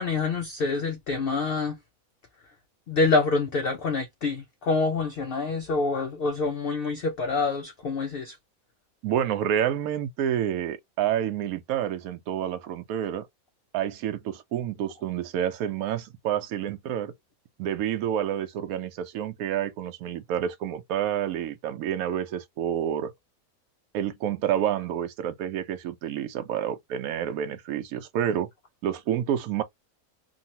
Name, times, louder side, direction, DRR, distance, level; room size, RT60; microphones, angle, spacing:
voice 1, 0.0-1.8 2.9-8.4, left 3 dB, 80° left, 0.5 m, -26 dB
voice 2, 9.0-13.3 13.7-17.1 17.6-23.1 23.9-28.5 28.8-29.6, right 10 dB, 75° right, 1.0 m, -29 dB
2.9 x 2.5 x 2.7 m
omnidirectional pair, 1.5 m